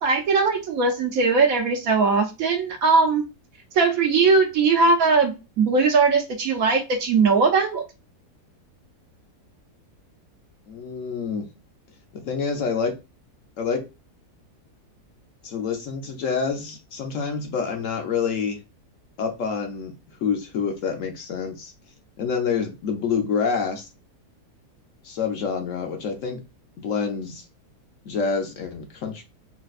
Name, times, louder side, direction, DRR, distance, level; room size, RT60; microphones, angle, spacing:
voice 1, 0.0-3.2 3.7-7.9, right 4 dB, 65° right, 4 dB, 1.0 m, -20 dB
voice 2, 10.7-11.5 12.1-12.9 13.6-13.8 15.4-18.6 19.2-19.9 20.2-21.7 22.2-23.9 25.0-26.4 26.8-27.4 28.1-29.2, left 6 dB, 65° left, 4 dB, 0.9 m, -27 dB
4.0 x 2.2 x 2.4 m, 0.27 s
omnidirectional pair, 1.8 m